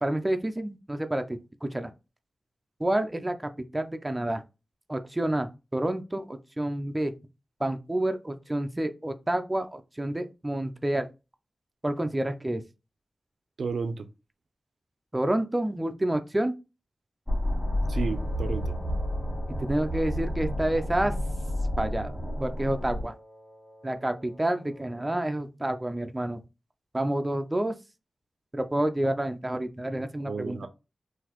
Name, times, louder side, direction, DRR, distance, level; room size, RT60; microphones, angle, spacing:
voice 1, 0.0-1.9 2.8-3.4 3.7-4.4 4.9-7.1 7.6-11.1 11.8-12.6 15.1-16.5 19.6-21.1 21.8-22.1 22.4-23.1 23.8-26.4 26.9-27.8 28.5-30.6, right 1 dB, 15° right, 0.4 m, -29 dB
voice 2, 13.6-14.1 17.9-18.8 30.3-30.7, right 4 dB, 80° right, 0.4 m, -32 dB
sound 1, 17.3-23.0, left 1 dB, 5° left, 1.6 m, -30 dB
Wind instrument woodwind instrument, 17.9-25.2, equal, 35° left, 0.9 m, -51 dB
3.8 x 2.5 x 2.9 m
wide cardioid pair, 85°, 0 cm